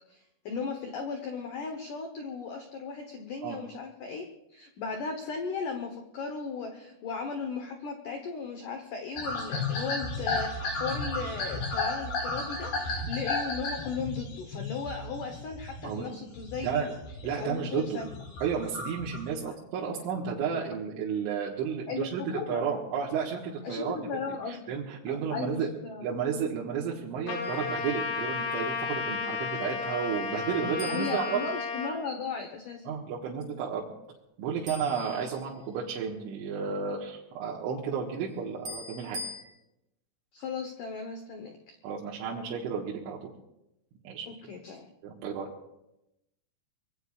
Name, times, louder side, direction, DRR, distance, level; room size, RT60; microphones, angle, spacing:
voice 1, 0.1-17.0 17.3-18.2 19.5-19.6 21.9-22.6 23.6-24.8 25.1-26.1 30.9-32.9 40.3-41.8 44.3-44.9, left 5 dB, 90° left, 4 dB, 1.8 m, -37 dB
sound 1, 9.2-16.0 16.3-17.3 17.7-19.2, left 3 dB, 55° left, 6.1 m, -33 dB
voice 2, 15.8-16.2 16.6-16.9 17.2-18.0 18.4-22.2 22.5-23.4 23.7-24.0 24.5-25.7 26.0-31.4 32.9-33.9 34.4-39.2 41.8-43.3 44.1-44.3 45.0-45.5, right 6 dB, 80° right, -4 dB, 3.9 m, -32 dB
Trumpet, 27.3-31.9, left 4 dB, 75° left, 4.2 m, -33 dB
sound 2, 27.4-27.8 30.8-32.1 34.7-35.9 38.6-39.4, left 2 dB, 20° right, 3.3 m, -43 dB
25.0 x 21.0 x 2.4 m, 0.87 s
omnidirectional pair, 5.5 m